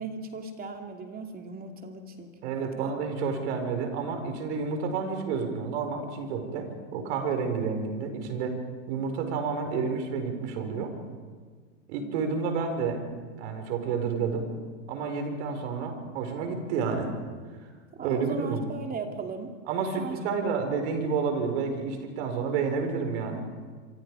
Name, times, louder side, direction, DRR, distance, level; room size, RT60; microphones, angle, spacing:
voice 1, 0.0-2.5 2.8-2.9 17.9-19.6 20.0-20.2, right 4 dB, 25° right, 4 dB, 2.6 m, -37 dB
voice 2, 2.4-6.7 6.9-8.6 8.9-10.9 11.9-13.0 13.4-14.5 14.9-17.1 18.0-18.6 19.7-23.4, right 5 dB, 60° right, 5 dB, 5.0 m, -30 dB
26.5 x 24.5 x 5.0 m, 1.6 s
hypercardioid pair, 120°, 38 cm